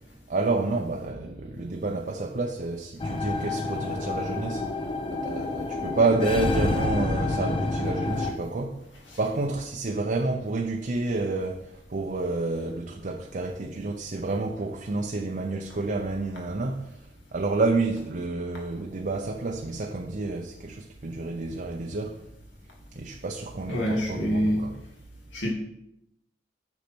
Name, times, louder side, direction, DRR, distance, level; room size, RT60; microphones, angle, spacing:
voice 1, 0.3-8.8 9.2-17.0 17.3-22.1 22.9-24.8, right 3 dB, 45° right, 0.6 m, -29 dB
sound 1, 3.0-8.3, left 2 dB, 30° left, 0.7 m, -28 dB
voice 2, 23.7-24.6 25.3-25.5, equal, 75° left, 2.3 m, -26 dB
8.3 x 6.5 x 4.4 m
head